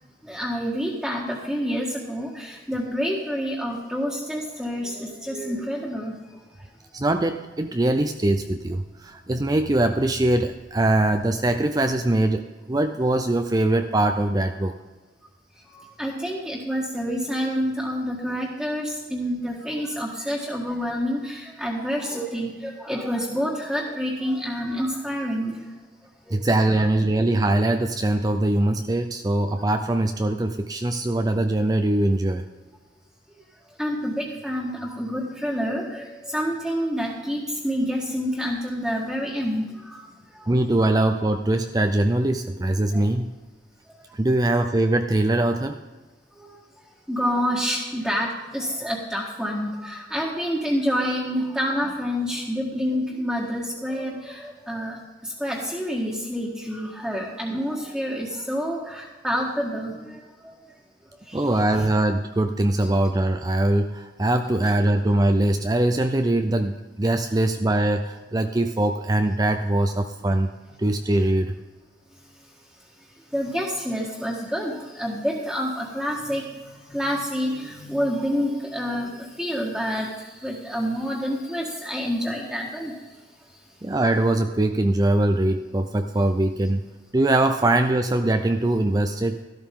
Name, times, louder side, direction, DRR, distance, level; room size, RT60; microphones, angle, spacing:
voice 1, 0.2-6.1 15.7-25.6 26.3-26.4 33.8-40.0 42.9-43.0 47.1-54.9 55.4-59.9 61.3-61.4 73.3-76.4 76.9-79.1 79.4-80.1 80.4-82.9, equal, ahead, -6 dB, 1.7 m, -28 dB
voice 2, 6.9-14.7 26.3-32.5 40.5-43.3 44.1-45.8 61.3-70.5 70.8-71.5 83.8-86.8 87.1-89.4, right 1 dB, 20° right, 6 dB, 0.5 m, -22 dB
13.5 x 12.5 x 3.8 m, 1.3 s
head